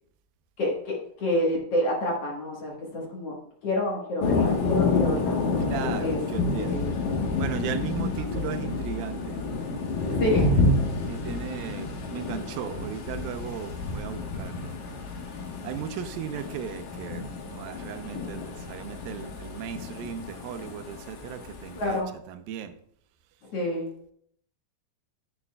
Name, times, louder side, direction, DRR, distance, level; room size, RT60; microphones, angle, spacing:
voice 1, 0.6-3.4 3.6-5.4 6.0-6.2 6.6-7.0 8.0-8.7 10.2-10.5 21.8-22.1 23.5-23.9, left 1 dB, 55° left, -2 dB, 1.9 m, -28 dB
Thunder, 4.2-22.0, left 3 dB, 75° left, 2.8 m, -29 dB
voice 2, 5.6-7.0 7.4-9.4 10.0-10.7 11.0-14.7 15.6-22.7, right 8 dB, 90° right, 9 dB, 2.5 m, -37 dB
9.7 x 9.6 x 2.3 m, 0.68 s
omnidirectional pair, 4.1 m